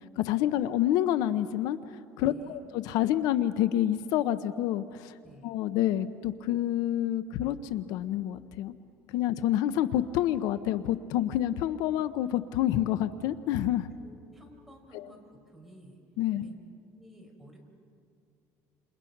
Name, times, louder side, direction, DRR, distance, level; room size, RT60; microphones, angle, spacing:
voice 1, 0.2-5.2 5.4-8.7 9.1-13.9 14.9-15.1 16.2-16.5, left 12 dB, 80° left, 13 dB, 0.8 m, -28 dB
voice 2, 2.2-2.6 5.2-5.5 14.0-16.0 16.3-16.6 16.9-17.6, right 1 dB, ahead, 0 dB, 4.8 m, -53 dB
29.0 x 28.0 x 6.0 m, 2.4 s
cardioid pair, 135°, 6 cm